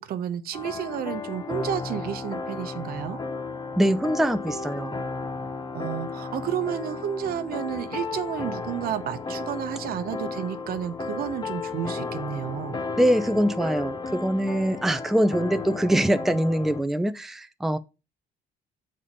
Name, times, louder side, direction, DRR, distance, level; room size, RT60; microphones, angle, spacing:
voice 1, 0.0-3.2 5.7-12.8 14.7-14.9, right 10 dB, 60° right, 0.8 m, -31 dB
sound 1, 0.5-16.8, left 4 dB, 25° left, 0.8 m, -34 dB
voice 2, 3.8-4.9 13.0-17.8, right 1 dB, ahead, 0.5 m, -23 dB
7.0 x 4.3 x 5.0 m
cardioid pair, 110°, 17 cm